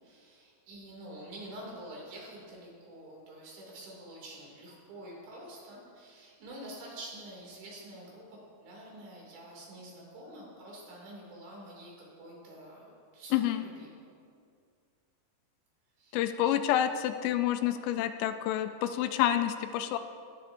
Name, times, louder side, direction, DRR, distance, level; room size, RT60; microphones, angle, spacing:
voice 1, 0.0-13.9 16.0-16.2, right 1 dB, 85° right, -4 dB, 5.0 m, -47 dB
voice 2, 13.3-13.6 16.1-20.0, left 11 dB, 85° left, 9 dB, 2.8 m, -28 dB
16.5 x 11.0 x 2.7 m, 2.2 s
omnidirectional pair, 5.1 m